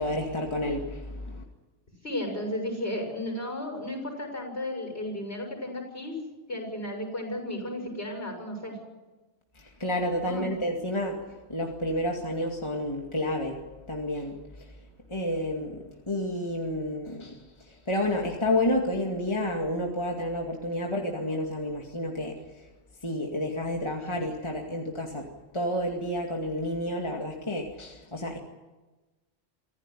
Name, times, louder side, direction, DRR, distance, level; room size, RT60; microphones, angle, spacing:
voice 1, 0.0-1.4 9.5-11.2 11.5-14.7 15.1-22.7 23.0-25.3 25.5-28.4, left 1 dB, 25° left, 0 dB, 2.3 m, -30 dB
voice 2, 2.0-6.2 6.5-8.8 10.2-10.5, left 1 dB, 55° left, 3 dB, 7.0 m, -34 dB
25.5 x 15.5 x 9.9 m, 1.2 s
omnidirectional pair, 1.2 m